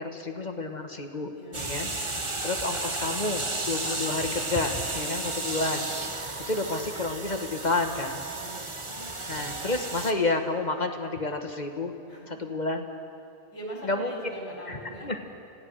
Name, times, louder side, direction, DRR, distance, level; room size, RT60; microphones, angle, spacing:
voice 1, 0.0-5.9 6.5-8.2 9.3-11.9 12.3-12.9 13.8-14.2 14.7-15.2, left 2 dB, 30° left, 5 dB, 1.3 m, -30 dB
voice 2, 1.3-1.6 8.3-8.9 12.1-12.5 13.5-15.1, right 1 dB, 55° left, -3 dB, 5.4 m, -42 dB
sound 1, 1.5-10.1, right 2 dB, 20° right, 1.1 m, -33 dB
26.5 x 16.5 x 6.3 m, 2.6 s
omnidirectional pair, 1.7 m